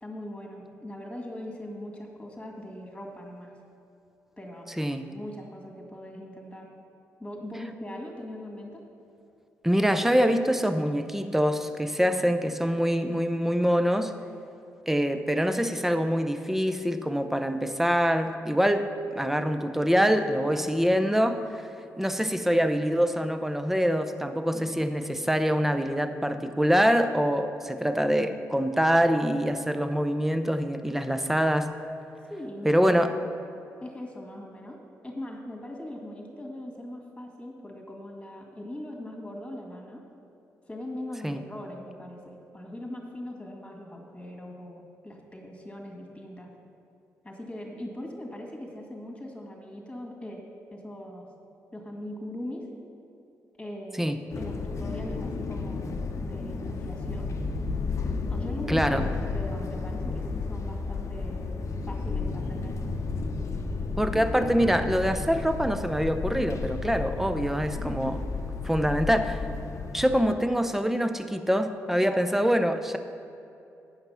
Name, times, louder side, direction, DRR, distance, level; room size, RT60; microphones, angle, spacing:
voice 1, 0.0-3.5 4.4-4.7 5.0-6.7 7.2-8.8 20.5-20.7 24.5-24.7 32.3-32.7 33.8-34.8 35.0-40.0 40.7-46.5 47.2-51.2 51.7-52.6 53.5-54.1 54.4-57.3 58.3-61.4 61.8-62.7 67.7-68.1 72.0-72.3, left 1 dB, 15° left, 0 dB, 2.1 m, -40 dB
voice 2, 9.6-14.1 14.9-21.6 22.0-31.7 32.6-33.1 41.2-41.4 54.0-54.2 58.7-59.1 64.0-68.2 68.6-69.4 69.9-73.0, equal, 5° right, 8 dB, 0.6 m, -25 dB
sound 1, 54.3-70.2, left 4 dB, 50° left, 0.8 m, -32 dB
9.1 x 5.8 x 5.6 m, 2.8 s
supercardioid pair, 60°, 6 cm